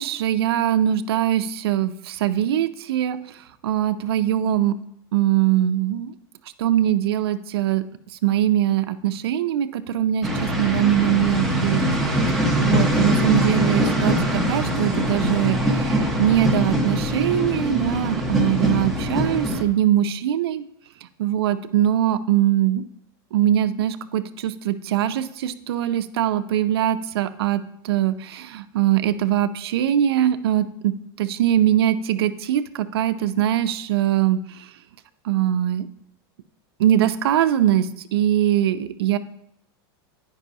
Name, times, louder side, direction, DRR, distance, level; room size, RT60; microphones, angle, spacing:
voice 1, 0.0-3.2 3.6-4.7 5.1-6.1 6.6-7.8 8.2-11.8 12.3-20.6 21.2-22.8 23.3-34.4 35.2-35.9 36.8-39.2, right 11 dB, 85° right, 12 dB, 0.5 m, -22 dB
sound 1, 10.2-19.6, equal, ahead, 0.7 m, -22 dB
9.8 x 5.3 x 2.7 m, 0.74 s
supercardioid pair, 145°, 13 cm